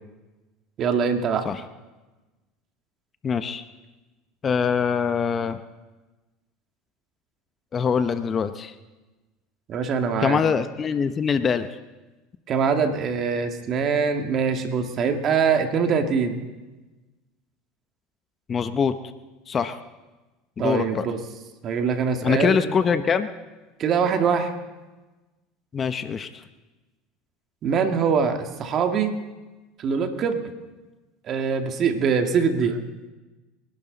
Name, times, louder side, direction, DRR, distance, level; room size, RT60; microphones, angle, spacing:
voice 1, 0.8-1.5 9.7-10.4 12.5-16.4 20.6-21.2 21.6-22.6 23.8-24.5 27.6-29.1 29.8-30.4 31.3-32.8, right 6 dB, 45° right, 5 dB, 2.2 m, -23 dB
voice 2, 3.2-3.6 4.4-5.6 7.7-8.7 10.2-11.7 18.5-18.9 19.5-19.8 20.6-21.0 22.2-23.3 25.7-26.3, left 6 dB, 35° left, 10 dB, 0.9 m, -23 dB
29.5 x 12.0 x 4.1 m, 1.2 s
hypercardioid pair, 90°, 0 cm